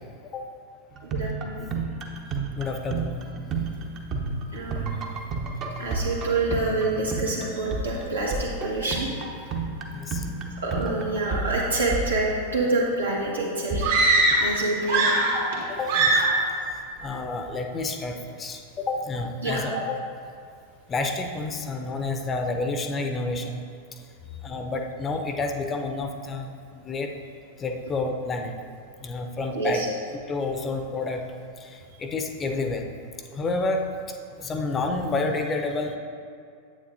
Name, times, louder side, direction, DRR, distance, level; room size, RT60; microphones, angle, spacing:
sound 1, 0.9-12.8 13.7-14.3, right 3 dB, 35° right, 0.9 m, -31 dB
voice 1, 1.1-1.7 4.5-4.9 5.8-9.1 10.6-13.9 14.4-15.1 19.4-19.8 29.5-29.8, right 2 dB, 75° right, -4 dB, 1.7 m, -27 dB
voice 2, 2.5-3.2 9.9-10.2 15.7-16.2 17.0-20.0 20.9-23.6 24.4-27.1 27.6-28.5 29.0-29.8 30.1-31.2 31.6-32.9 33.3-33.8 34.4-36.0, left 3 dB, 20° left, 4 dB, 0.7 m, -29 dB
sound 2, 13.8-14.6 14.8-15.6 15.9-16.4, right 2 dB, 60° right, 1.9 m, -21 dB
9.5 x 8.3 x 2.7 m, 2.4 s
figure-of-eight pair, 90°, 0 cm